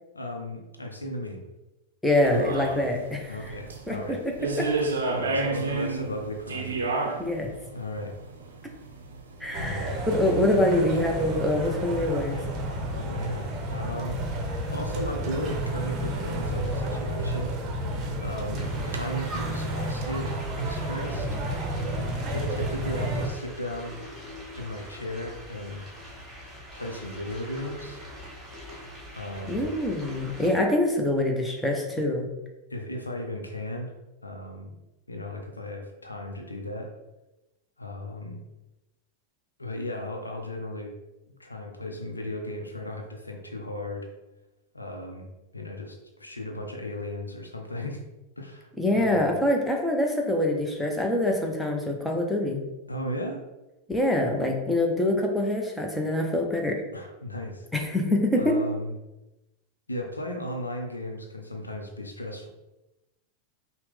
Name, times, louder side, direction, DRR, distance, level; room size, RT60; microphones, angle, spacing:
voice 1, 0.1-1.4 3.3-4.2 5.1-6.8 7.7-8.2 9.6-10.0 12.7-14.2 14.7-17.9 18.2-21.4 22.3-24.0 24.5-25.8 26.7-28.0 29.1-29.7 32.7-33.9 34.2-34.7 35.1-36.9 37.8-38.4 39.6-40.9 41.4-44.1 44.7-48.0 48.4-49.2 52.9-53.4 56.9-57.7 58.3-58.9 59.9-62.5, left 1 dB, 80° left, 3 dB, 0.6 m, -36 dB
voice 2, 2.0-3.4 3.9-4.7 7.2-7.5 9.4-12.4 29.4-32.3 48.8-52.6 53.9-56.8 57.7-58.6, left 1 dB, 5° left, 0 dB, 0.7 m, -25 dB
sound 1, 2.2-19.0, right 3 dB, 70° right, 0.6 m, -35 dB
sound 2, 9.5-23.3, right 1 dB, 35° right, 0.8 m, -31 dB
sound 3, 18.5-30.5, equal, 15° right, 1.3 m, -43 dB
5.6 x 2.1 x 3.4 m, 1.0 s
figure-of-eight pair, 90°, 0 cm